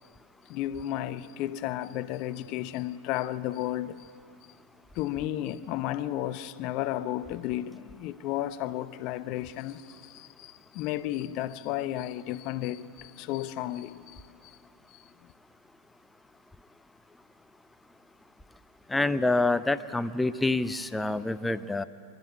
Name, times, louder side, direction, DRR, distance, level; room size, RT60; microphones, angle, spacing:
voice 1, 0.5-4.1 4.9-14.6, left 13 dB, 40° left, 0.7 m, -33 dB
voice 2, 18.9-21.8, left 2 dB, 5° left, 0.6 m, -27 dB
25.0 x 12.5 x 9.7 m
figure-of-eight pair, 90°, 0 cm